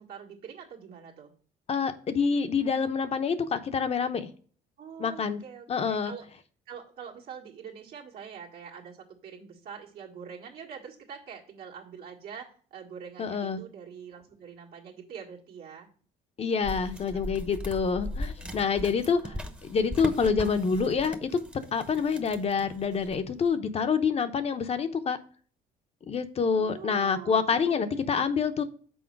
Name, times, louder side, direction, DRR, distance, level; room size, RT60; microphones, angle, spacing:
voice 1, 0.0-1.3 4.8-6.3 6.7-15.9 17.1-17.6 18.1-19.4 26.5-28.1, right 7 dB, 70° right, -3 dB, 1.7 m, -45 dB
voice 2, 1.7-4.3 5.0-5.4 5.7-6.1 13.2-13.6 16.4-19.4 19.6-21.3 21.7-25.2 26.1-28.6, left 5 dB, 40° left, 10 dB, 0.8 m, -27 dB
sound 1, 16.6-23.4, left 1 dB, 5° right, 0.9 m, -39 dB
6.4 x 4.3 x 5.9 m, 0.43 s
cardioid pair, 110°, 17 cm